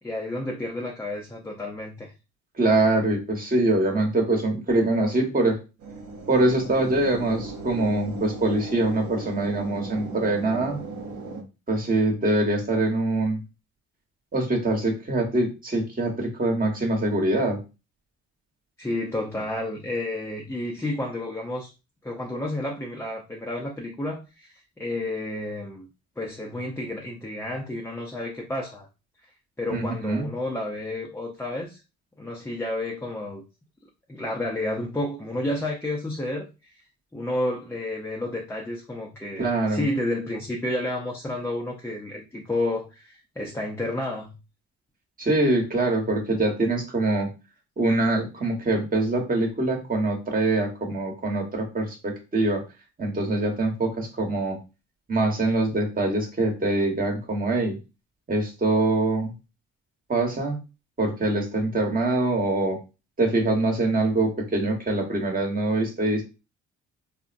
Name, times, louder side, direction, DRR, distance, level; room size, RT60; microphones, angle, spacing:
voice 1, 0.0-2.1 18.8-21.7 22.0-25.9 26.2-28.9 29.6-31.8 32.2-33.4 34.1-36.7 37.1-44.3, left 1 dB, 10° left, -1 dB, 0.5 m, -31 dB
voice 2, 2.6-5.6 6.3-10.8 11.7-13.4 14.3-17.6 29.7-30.3 39.4-39.9 45.2-47.3 47.8-52.6 53.0-54.6 55.1-57.8 58.3-59.3 60.1-60.6 61.0-62.8 63.2-66.2, right 2 dB, 30° right, 1 dB, 1.1 m, -24 dB
sound 1, 5.8-11.4, right 3 dB, 75° right, 0.8 m, -37 dB
3.8 x 2.1 x 2.5 m, 0.29 s
cardioid pair, 90°, 30 cm